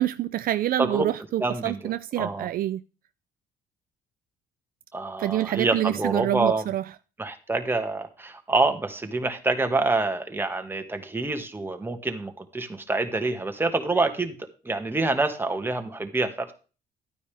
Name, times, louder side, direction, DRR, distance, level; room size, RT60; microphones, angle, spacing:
voice 1, 0.0-2.8 5.2-6.8, right 13 dB, 60° right, 0.5 m, -26 dB
voice 2, 1.4-2.5 4.9-6.7 7.2-16.5, right 3 dB, 15° right, 1.8 m, -27 dB
12.0 x 9.5 x 3.4 m
cardioid pair, 110°, 17 cm